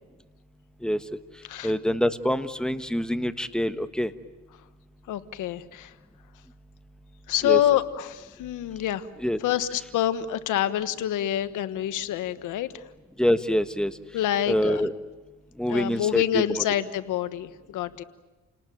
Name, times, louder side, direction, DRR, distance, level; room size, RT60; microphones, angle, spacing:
voice 1, 1.6-4.1 7.4-7.6 9.2-9.4 13.2-13.9 14.5-14.9 15.6-16.4, equal, ahead, 10 dB, 1.3 m, -25 dB
voice 2, 5.1-5.9 7.3-9.1 9.4-12.8 14.1-14.9 15.7-18.0, left 11 dB, 85° left, 12 dB, 1.4 m, -27 dB
30.0 x 19.0 x 9.2 m, 1.2 s
cardioid pair, 90°, 30 cm